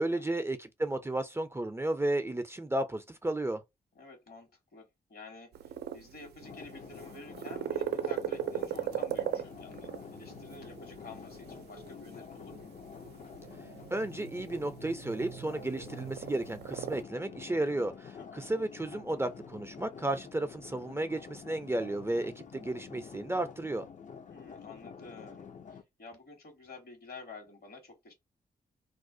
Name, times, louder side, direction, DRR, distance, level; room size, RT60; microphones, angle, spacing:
voice 1, 0.0-3.6 13.9-23.9, right 2 dB, 15° right, 0.4 m, -33 dB
voice 2, 3.9-12.7 18.2-18.5 24.3-28.1, left 3 dB, 65° left, 1.3 m, -50 dB
sound 1, 5.5-17.0, right 10 dB, 75° right, 0.4 m, -39 dB
sound 2, 6.4-25.8, left 6 dB, 50° left, 0.5 m, -48 dB
2.4 x 2.1 x 2.5 m
supercardioid pair, 45°, 17 cm